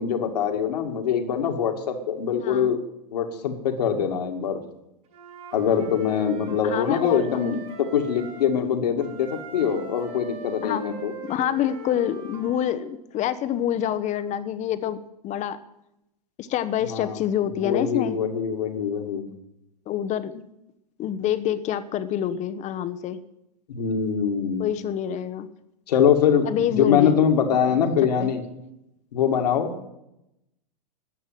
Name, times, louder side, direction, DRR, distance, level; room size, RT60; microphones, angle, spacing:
voice 1, 0.0-2.8 3.1-4.6 5.5-11.1 16.9-17.2 17.6-19.2 23.7-24.7 25.9-28.4 29.1-29.7, left 7 dB, 70° left, 5 dB, 2.1 m, -23 dB
voice 2, 2.4-2.7 6.6-7.6 10.6-10.9 11.2-15.6 16.4-18.2 19.9-20.4 21.0-23.2 24.6-25.5 26.4-27.2 27.8-27.9 28.2-28.3, left 10 dB, 35° left, 13 dB, 1.1 m, -27 dB
Wind instrument woodwind instrument, 5.1-8.5 9.0-12.7, right 3 dB, 55° right, 6.0 m, -41 dB
13.0 x 8.1 x 9.1 m, 0.87 s
hypercardioid pair, 100°, 21 cm